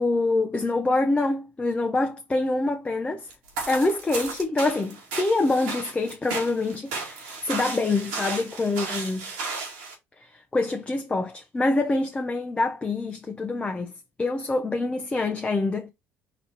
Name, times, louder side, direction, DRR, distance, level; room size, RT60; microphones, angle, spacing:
voice 1, 0.0-3.3 3.7-9.2 10.2-13.9 14.2-15.9, left 2 dB, 20° left, 0.7 m, -25 dB
sound 1, 3.3-9.9, right 4 dB, 85° right, 1.9 m, -34 dB
4.1 x 2.8 x 4.4 m
supercardioid pair, 75°, 5 cm